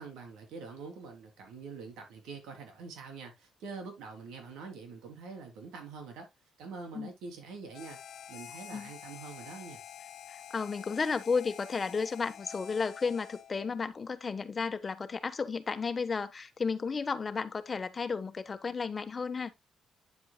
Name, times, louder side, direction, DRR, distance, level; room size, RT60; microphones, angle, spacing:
voice 1, 0.0-6.3 6.6-8.0 8.3-9.8, right 4 dB, 90° right, 3.5 m, -45 dB
Harmonica, 7.7-13.7, left 10 dB, 70° left, 0.7 m, -48 dB
voice 2, 10.3-19.5, left 5 dB, 35° left, 1.1 m, -33 dB
9.4 x 7.9 x 2.3 m
cardioid pair, 90°, 0 cm